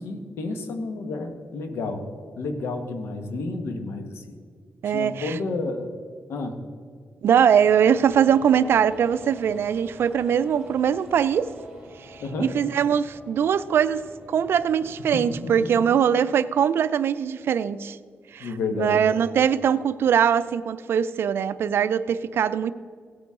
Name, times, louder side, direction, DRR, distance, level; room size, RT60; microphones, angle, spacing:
voice 1, 0.0-2.1 2.3-4.2 4.8-5.9 6.3-6.6 12.2-12.5 15.1-15.8 18.4-19.1, left 3 dB, 90° left, 6 dB, 1.3 m, -31 dB
voice 2, 4.8-5.3 7.2-11.5 12.1-14.0 14.3-18.0 18.3-22.7, right 8 dB, 70° right, 15 dB, 0.4 m, -22 dB
sound 1, 7.5-15.7, right 2 dB, 10° right, 2.9 m, -46 dB
17.0 x 8.7 x 3.7 m, 2.1 s
cardioid pair, 115°, 4 cm